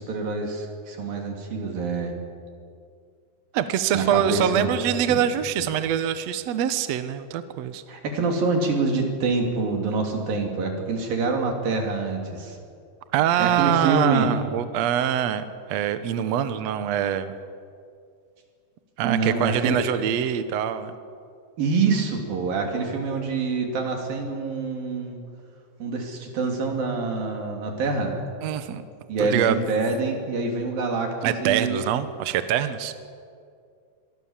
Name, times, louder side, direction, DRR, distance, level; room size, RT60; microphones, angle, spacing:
voice 1, 0.0-2.1 3.9-4.8 5.1-5.2 5.6-5.7 7.9-12.6 13.4-14.3 19.0-19.8 21.6-25.2 25.8-28.2 29.1-31.8, right 4 dB, 60° right, 2 dB, 4.8 m, -26 dB
voice 2, 3.5-7.8 13.1-17.3 19.0-21.0 28.4-28.8 29.2-29.5 31.2-32.9, right 10 dB, 80° right, 11 dB, 1.5 m, -24 dB
26.5 x 22.0 x 7.4 m, 2.3 s
omnidirectional pair, 4.6 m